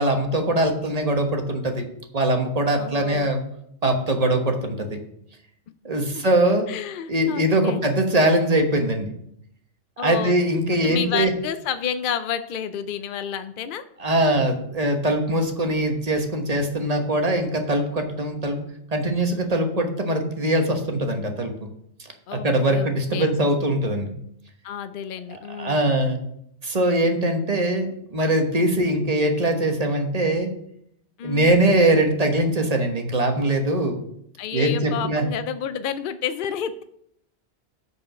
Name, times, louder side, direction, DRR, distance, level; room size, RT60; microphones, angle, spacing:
voice 1, 0.0-1.9 2.1-3.4 3.8-5.0 5.8-6.7 7.1-9.1 10.0-11.3 14.0-18.6 18.9-21.7 22.3-24.1 25.6-26.2 26.6-30.5 31.2-34.0 34.5-35.3, right 1 dB, 35° right, 4 dB, 1.2 m, -22 dB
voice 2, 2.7-3.3 6.1-6.2 6.7-7.8 10.0-10.3 10.8-13.8 22.3-23.3 24.6-25.9 31.2-31.6 34.4-36.8, left 8 dB, 60° left, 10 dB, 0.6 m, -30 dB
8.4 x 4.8 x 6.4 m, 0.72 s
omnidirectional pair, 1.2 m